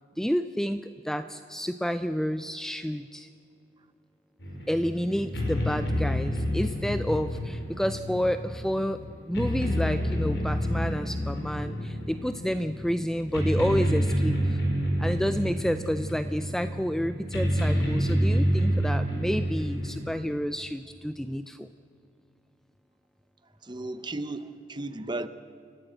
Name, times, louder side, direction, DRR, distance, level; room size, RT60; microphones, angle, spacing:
voice 1, 0.2-3.3 4.7-9.0 9.3-14.6 15.0-21.7, equal, 5° left, 10 dB, 0.4 m, -29 dB
sound 1, 4.4-20.0, equal, 70° left, 5.2 m, -28 dB
voice 2, 23.6-25.3, right 2 dB, 25° right, 12 dB, 0.8 m, -35 dB
29.5 x 12.0 x 8.0 m, 2.4 s
head